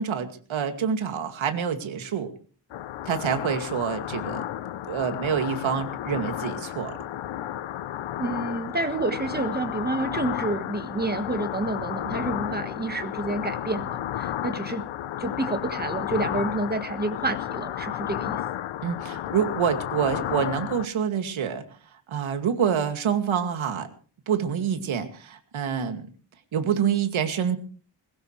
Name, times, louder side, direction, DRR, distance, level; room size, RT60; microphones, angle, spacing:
voice 1, 0.0-2.3 3.1-4.4 4.8-6.9 18.8-21.6 22.1-23.9 24.3-26.1 26.5-27.6, right 7 dB, 85° right, 6 dB, 2.4 m, -27 dB
sound 1, 2.7-20.9, left 12 dB, 80° left, 0.8 m, -32 dB
voice 2, 8.2-14.8 15.2-18.4, right 2 dB, 20° right, 8 dB, 1.5 m, -29 dB
21.5 x 18.5 x 3.3 m, 0.41 s
wide cardioid pair, 155°, 46 cm